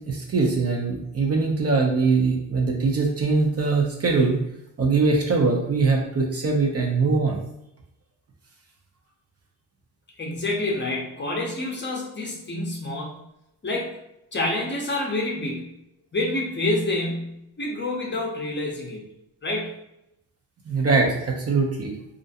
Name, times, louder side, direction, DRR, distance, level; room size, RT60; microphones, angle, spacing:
voice 1, 0.1-4.4 4.8-7.4 20.7-21.9, right 4 dB, 40° right, 0 dB, 0.5 m, -22 dB
voice 2, 10.2-13.2 13.6-14.0 14.3-15.7 16.1-19.1 19.4-19.7, left 2 dB, 30° left, -1 dB, 0.6 m, -28 dB
2.4 x 2.1 x 2.7 m, 0.84 s
cardioid pair, 80°, 40 cm